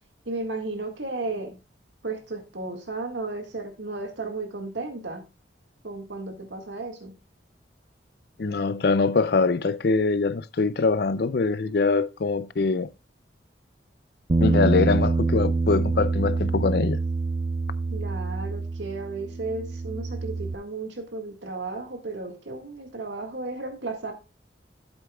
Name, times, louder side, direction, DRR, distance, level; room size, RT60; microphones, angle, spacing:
voice 1, 0.3-1.6 2.0-5.2 5.8-7.1 17.9-24.1, right 3 dB, 80° right, 1.9 m, -34 dB
voice 2, 8.4-12.9 14.4-17.0, left 4 dB, 60° left, 0.5 m, -23 dB
Bass guitar, 14.3-20.5, right 3 dB, 30° right, 0.4 m, -26 dB
12.0 x 7.9 x 2.3 m
head